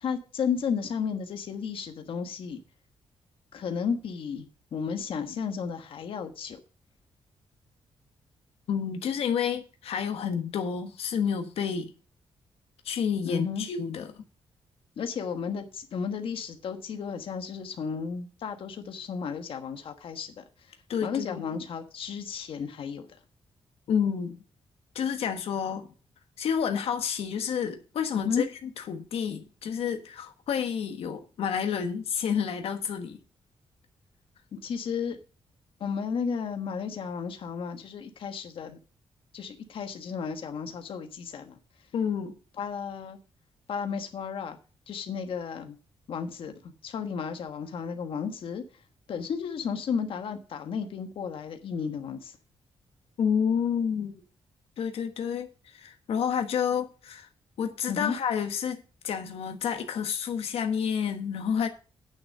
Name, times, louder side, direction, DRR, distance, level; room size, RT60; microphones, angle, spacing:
voice 1, 0.0-2.6 3.5-6.6 13.2-13.7 15.0-20.4 21.0-23.0 28.2-28.4 34.5-35.2 35.8-38.8 39.3-41.6 42.6-43.2 43.7-44.6 44.9-45.7 46.1-46.5 46.8-48.6 49.1-52.3 57.9-58.1, left 6 dB, 65° left, 1.3 m, -33 dB
voice 2, 8.7-11.9 12.8-14.2 20.9-21.4 23.9-24.4 24.9-25.9 26.4-28.5 28.8-33.2 41.9-42.3 53.2-54.2 54.8-57.3 57.6-61.7, left 7 dB, 85° left, 1.3 m, -29 dB
9.3 x 6.4 x 6.5 m
wide cardioid pair, 150°, 10 cm